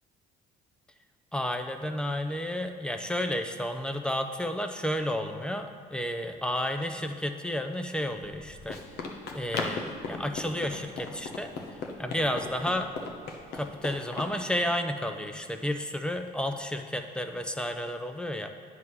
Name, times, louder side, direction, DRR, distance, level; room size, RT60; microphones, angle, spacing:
voice 1, 1.3-9.1 9.3-12.9 13.5-18.5, left 1 dB, 5° left, 6 dB, 0.5 m, -32 dB
Run, 8.1-14.3, left 4 dB, 70° left, 1.0 m, -38 dB
9.3 x 3.7 x 6.1 m, 2.3 s
cardioid pair, 110°, 17 cm